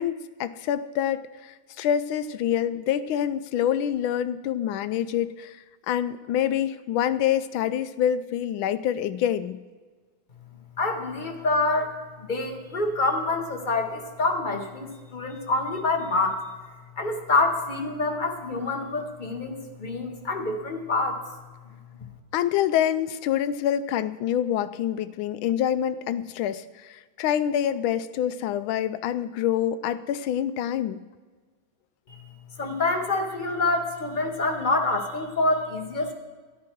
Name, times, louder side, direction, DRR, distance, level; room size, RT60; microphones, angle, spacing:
voice 1, 0.0-5.6 5.9-9.6 22.3-31.0, left 10 dB, 75° left, 13 dB, 1.3 m, -26 dB
voice 2, 10.8-16.4 17.0-21.2 32.1-32.2 32.6-36.1, left 2 dB, 30° left, 3 dB, 1.0 m, -26 dB
13.0 x 10.5 x 4.6 m, 1.4 s
omnidirectional pair, 2.3 m